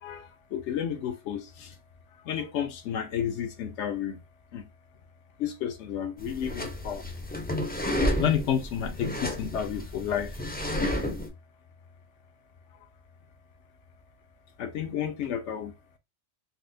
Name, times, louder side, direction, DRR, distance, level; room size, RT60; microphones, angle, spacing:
voice 1, 0.0-1.8 2.2-4.2 4.5-4.7 5.4-7.1 8.2-10.4 14.6-15.7, left 9 dB, 80° left, 1.0 m, -31 dB
sound 1, 6.2-11.3, left 1 dB, 15° left, 0.4 m, -31 dB
4.1 x 2.1 x 2.5 m
omnidirectional pair, 1.2 m